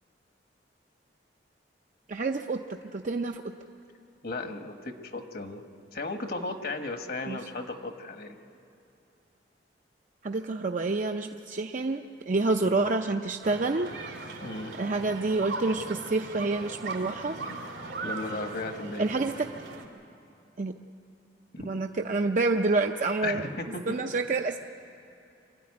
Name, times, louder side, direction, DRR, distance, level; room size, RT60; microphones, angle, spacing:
voice 1, 2.1-2.6 2.9-3.5 7.3-7.4 10.2-13.9 14.8-17.4 19.0-19.5 20.6-20.7 21.6-23.4 23.9-24.6, right 3 dB, 45° right, 4 dB, 0.5 m, -28 dB
voice 2, 4.2-5.6 5.9-8.4 12.6-12.8 14.4-14.7 17.4-17.7 18.0-19.3 21.5-21.7 23.2-23.9, left 2 dB, 55° left, 6 dB, 1.3 m, -35 dB
sound 1, 13.4-19.8, right 3 dB, 90° right, 2.5 m, -39 dB
25.0 x 13.0 x 9.7 m, 2.8 s
head